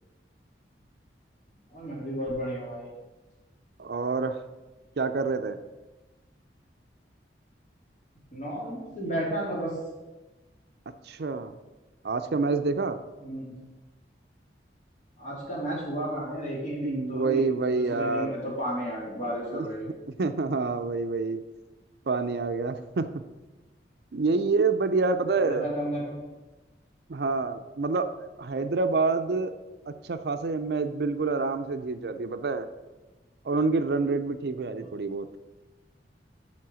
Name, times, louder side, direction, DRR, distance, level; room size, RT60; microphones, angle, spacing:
voice 1, 1.7-2.9 8.3-9.7 13.2-13.5 15.2-17.4 17.7-19.9 25.3-26.2 34.7-34.9, right 1 dB, 40° left, -5 dB, 3.1 m, -33 dB
voice 2, 3.8-4.4 5.0-5.6 11.0-11.5 12.0-13.0 16.8-18.4 19.5-19.7 20.1-21.4 22.1-23.1 24.1-25.7 27.1-29.5 29.9-32.7 33.4-35.3, right 3 dB, 60° right, 9 dB, 0.5 m, -27 dB
7.4 x 5.7 x 6.2 m, 1.2 s
head